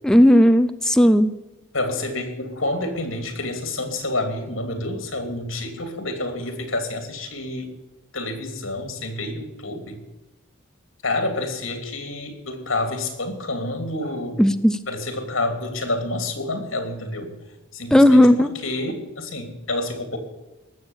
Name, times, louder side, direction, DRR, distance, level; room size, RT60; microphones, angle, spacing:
voice 1, 0.0-1.3 14.4-14.8 17.9-18.5, left 1 dB, 5° left, 10 dB, 0.4 m, -14 dB
voice 2, 1.7-7.7 8.1-10.0 11.0-14.4 14.9-17.4 17.7-20.2, left 2 dB, 70° left, 6 dB, 2.9 m, -28 dB
19.0 x 7.3 x 7.3 m, 1.1 s
head